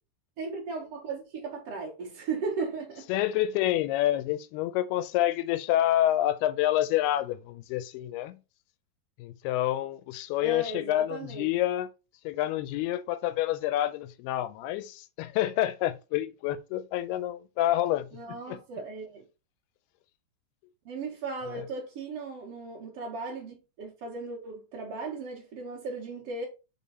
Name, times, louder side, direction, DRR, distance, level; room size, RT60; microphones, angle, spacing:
voice 1, 0.4-3.1 10.4-11.5 18.1-19.2 20.9-26.4, right 4 dB, 50° right, 2.1 m, -36 dB
voice 2, 3.1-8.4 9.2-11.9 12.2-18.6 21.5-21.6, left 13 dB, 90° left, 2.5 m, -28 dB
5.5 x 5.1 x 4.1 m
omnidirectional pair, 4.5 m